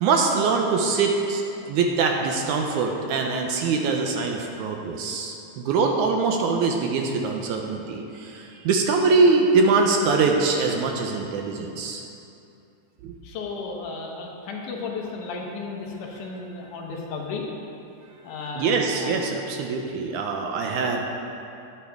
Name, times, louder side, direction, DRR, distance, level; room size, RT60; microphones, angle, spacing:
voice 1, 0.0-12.0 13.0-13.1 18.6-21.0, right 4 dB, 80° right, 2 dB, 2.0 m, -23 dB
voice 2, 13.2-17.5 18.2-19.3, left 4 dB, 75° left, -1 dB, 2.5 m, -34 dB
10.5 x 10.0 x 3.5 m, 2.7 s
omnidirectional pair, 3.8 m